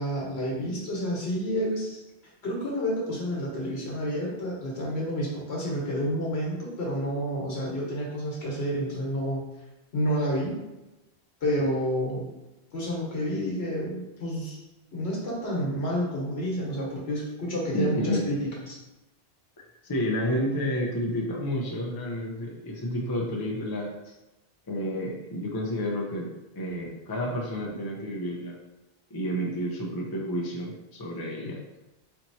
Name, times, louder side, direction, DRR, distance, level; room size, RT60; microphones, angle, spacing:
voice 1, 0.0-2.0 2.4-9.5 9.9-10.6 11.4-12.3 12.7-14.6 14.9-18.3 18.7-18.8, equal, 80° left, -4 dB, 1.5 m, -29 dB
voice 2, 17.7-18.3 19.6-23.9 24.7-28.6 29.1-31.6, equal, 30° left, -2 dB, 0.5 m, -30 dB
4.4 x 2.9 x 2.7 m, 1.0 s
omnidirectional pair, 1.1 m